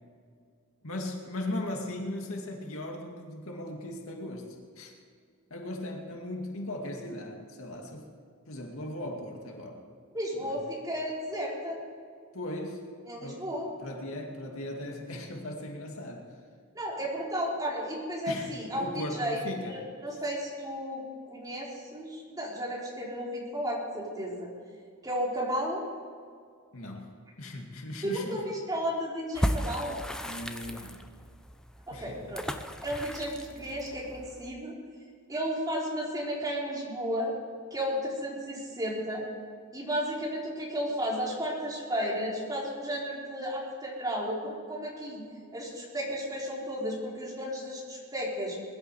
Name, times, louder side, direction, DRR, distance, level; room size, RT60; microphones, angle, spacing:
voice 1, 0.8-4.9 5.5-8.1 8.5-9.8 10.4-10.6 12.3-12.8 13.2-16.3 18.3-19.7 26.7-28.5 30.2-31.0 31.9-32.2, left 1 dB, 65° left, 1 dB, 2.4 m, -38 dB
voice 2, 10.1-11.8 13.1-13.7 16.7-21.0 21.3-24.5 25.0-25.8 28.0-30.0 31.9-32.4 32.8-34.8 35.3-37.3 37.7-39.2 39.7-45.2 45.5-48.6, equal, 15° right, -4 dB, 3.9 m, -33 dB
sound 1, 29.3-34.5, equal, 5° left, 0.7 m, -35 dB
21.5 x 12.0 x 4.8 m, 2.1 s
head